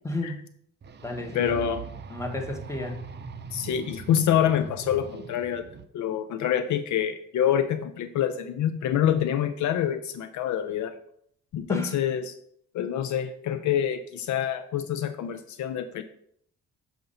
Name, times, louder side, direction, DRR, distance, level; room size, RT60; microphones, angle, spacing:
voice 1, 0.0-0.5 1.0-1.5 2.1-3.0 11.7-11.9, left 2 dB, 10° left, 3 dB, 1.1 m, -32 dB
sound 1, 0.8-5.8, right 5 dB, 35° right, 0.5 m, -41 dB
voice 2, 1.3-1.8 3.5-5.7 5.9-11.0 11.5-12.3 12.7-16.0, left 9 dB, 70° left, 10 dB, 0.5 m, -26 dB
6.7 x 2.6 x 5.4 m, 0.66 s
cardioid pair, 90°, 30 cm